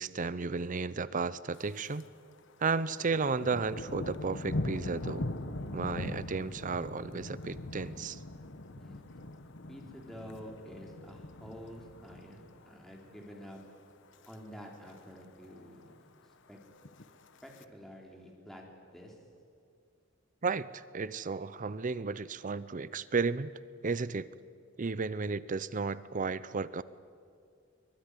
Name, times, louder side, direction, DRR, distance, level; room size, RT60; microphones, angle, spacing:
voice 1, 0.0-2.1 2.6-5.3 5.7-8.2 20.4-23.5 23.8-24.3 24.8-26.8, right 4 dB, 40° right, 17 dB, 0.6 m, -33 dB
Thunder, 1.5-2.1 2.4-12.7 13.1-13.5 13.9-14.3 14.6-14.7 14.9-15.0 15.4-15.9 16.7-17.6, left 1 dB, 65° left, 1.2 m, -41 dB
voice 2, 9.7-13.6 14.3-16.1 16.5-16.6 17.4-19.2, equal, ahead, 0 dB, 3.7 m, -49 dB
23.5 x 21.0 x 9.8 m, 2.3 s
head